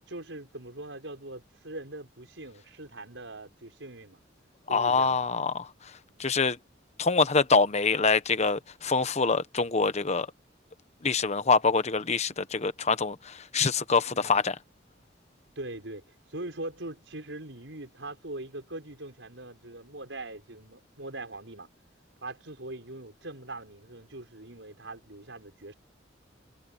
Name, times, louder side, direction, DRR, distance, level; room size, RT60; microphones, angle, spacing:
voice 1, 0.0-4.2 4.7-5.2 14.1-14.4 15.6-21.7 22.2-25.7, right 2 dB, 80° right, 5.6 m, -41 dB
voice 2, 4.7-5.7 6.2-6.6 7.0-10.3 11.0-14.5, left 4 dB, 35° left, 1.1 m, -25 dB
head